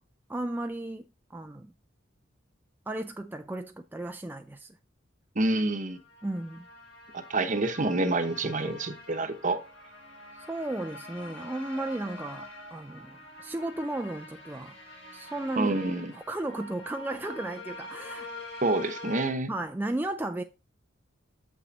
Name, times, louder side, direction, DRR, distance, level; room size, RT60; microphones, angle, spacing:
voice 1, 0.3-1.7 2.9-4.8 6.2-6.7 10.4-14.7 15.1-15.8 16.1-18.3 19.5-20.4, right 1 dB, 10° right, 0.4 m, -34 dB
voice 2, 5.4-6.0 7.1-9.6 15.6-16.1 18.6-19.5, right 2 dB, 40° right, 0.9 m, -27 dB
sound 1, 5.9-19.3, left 1 dB, 90° left, 3.2 m, -45 dB
7.2 x 5.9 x 4.0 m
head